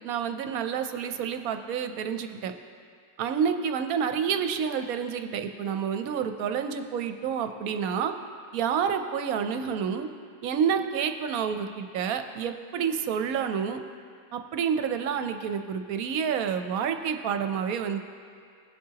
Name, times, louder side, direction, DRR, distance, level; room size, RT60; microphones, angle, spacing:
voice 1, 0.0-2.5 3.2-8.1 8.5-10.1 10.4-13.8 14.3-18.0, right 7 dB, 70° right, 7 dB, 1.0 m, -29 dB
17.5 x 7.4 x 2.9 m, 2.1 s
omnidirectional pair, 1.7 m